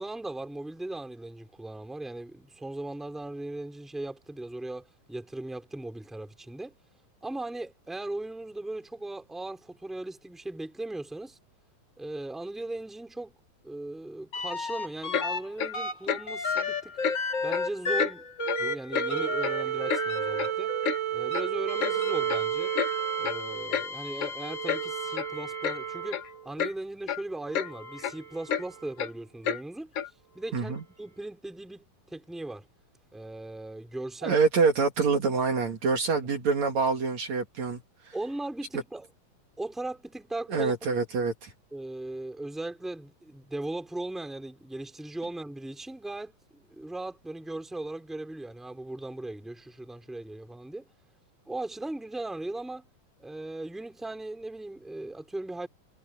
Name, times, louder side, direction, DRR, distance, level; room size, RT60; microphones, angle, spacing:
voice 1, 0.0-6.7 7.2-11.4 12.0-13.3 13.6-17.0 17.4-18.2 18.6-20.7 21.1-22.8 23.2-29.9 30.3-31.9 32.1-32.7 33.1-34.4 36.1-36.3 38.1-39.1 39.6-40.8 41.7-50.9 51.5-52.9 53.2-55.7, right 2 dB, ahead, 3.5 m, -38 dB
sound 1, 14.3-15.4 15.7-26.5 27.4-28.9 30.6-30.7, right 3 dB, 30° left, 3.7 m, -31 dB
Clock, 15.1-15.3 15.6-15.7 16.1-16.2 16.6-16.7 17.0-17.2 17.5-17.7 18.0-18.1 18.5-18.6 19.0-19.1 19.4-20.0 20.4-20.5 20.8-21.0 21.3-21.5 21.8-22.0 22.3-22.4 22.8-22.9 23.2-23.4 23.7-23.9 24.2-24.3 24.7-24.8 25.2-25.3 25.6-25.8 26.1-26.3 26.6-26.7 27.1-27.2 27.5-27.7 28.0-28.1 28.5-28.6 29.0-29.1 29.4-29.6 30.0-30.1, left 8 dB, 50° left, 2.1 m, -30 dB
voice 2, 30.5-30.8 34.2-38.1 40.5-41.5, right 4 dB, 55° right, 3.3 m, -26 dB
omnidirectional pair, 4.0 m